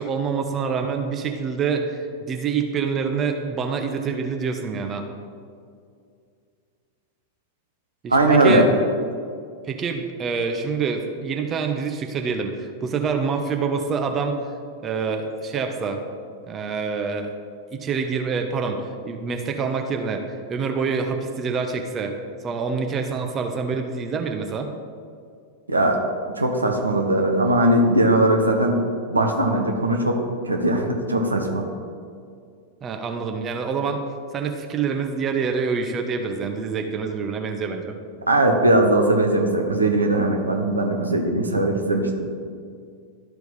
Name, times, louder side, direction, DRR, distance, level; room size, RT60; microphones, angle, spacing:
voice 1, 0.0-5.0 8.0-8.7 9.6-14.4 14.8-16.0 16.5-17.3 17.7-22.1 22.4-24.7 32.8-34.0 34.3-37.9, right 5 dB, 25° right, 5 dB, 0.7 m, -26 dB
voice 2, 8.1-8.7 25.7-26.0 26.4-28.8 29.1-30.2 30.5-31.7 38.3-42.3, right 1 dB, 80° right, 3 dB, 0.8 m, -19 dB
12.5 x 4.6 x 4.1 m, 2.3 s
figure-of-eight pair, 90°, 0 cm